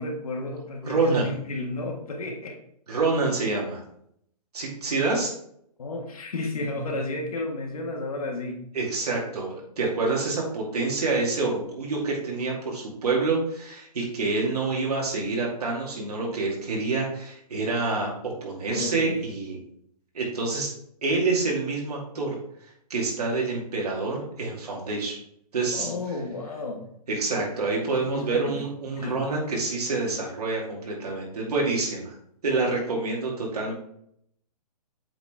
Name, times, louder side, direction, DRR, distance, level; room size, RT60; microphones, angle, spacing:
voice 1, 0.0-2.6 5.8-8.6 18.7-19.2 25.7-26.9 28.0-28.6 29.0-29.2, left 2 dB, 60° left, 2 dB, 1.6 m, -32 dB
voice 2, 0.8-1.3 2.9-3.8 4.5-5.3 8.7-19.6 20.1-20.7 21.0-22.4 22.9-25.2 25.5-25.9 27.1-32.1 32.4-33.7, right 3 dB, 70° right, -2 dB, 2.6 m, -27 dB
7.9 x 4.1 x 3.4 m, 0.71 s
hypercardioid pair, 180°, 21 cm